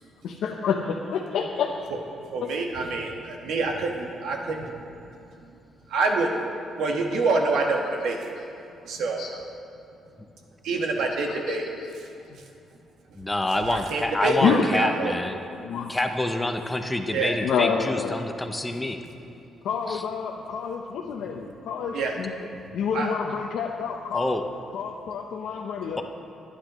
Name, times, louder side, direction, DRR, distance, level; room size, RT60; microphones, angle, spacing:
voice 1, 0.2-1.7 2.4-2.5 2.8-2.9 7.1-8.4 9.2-9.5 11.0-11.9 12.3-12.4 14.2-14.8 15.5-16.2 17.4-18.2 19.6-22.5 22.7-24.4 24.7-26.0, left 6 dB, 70° left, 1 dB, 0.7 m, -29 dB
voice 2, 2.3-5.0 5.9-6.5 6.8-8.2 8.9-9.2 10.6-11.6 13.6-15.1 17.1-17.3 21.9-22.2 22.9-23.1, right 3 dB, 75° right, 1 dB, 1.4 m, -26 dB
voice 3, 13.2-15.4 15.9-19.0 19.9-20.0 24.1-24.4, left 1 dB, 10° left, 6 dB, 0.6 m, -27 dB
23.5 x 9.9 x 3.1 m, 2.7 s
cardioid pair, 180°, 0 cm